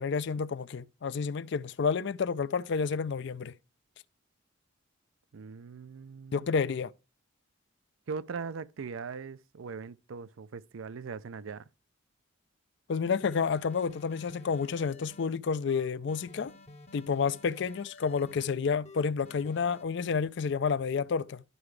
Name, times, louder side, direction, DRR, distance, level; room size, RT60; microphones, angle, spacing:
voice 1, 0.0-3.5 6.3-6.9 12.9-16.5 16.9-21.4, left 5 dB, 60° left, 0.4 m, -30 dB
voice 2, 5.3-6.5 8.1-11.7, right 5 dB, 90° right, 0.5 m, -40 dB
sound 1, 13.2-15.3 15.7-18.5 18.9-19.9, left 2 dB, 35° left, 0.8 m, -52 dB
12.5 x 4.8 x 3.2 m
head